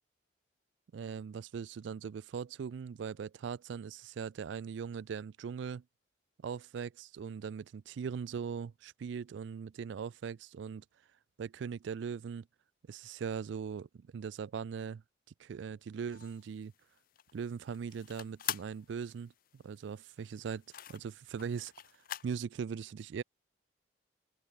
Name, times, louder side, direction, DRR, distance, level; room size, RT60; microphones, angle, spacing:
voice 1, 0.9-5.8 6.4-10.8 11.4-12.5 12.9-15.0 15.4-16.7 17.3-20.6 20.9-21.7 22.2-23.2, right 6 dB, 70° right, 0.3 m, -40 dB
sound 1, 16.1-22.4, left 12 dB, 45° left, 0.5 m, -45 dB
head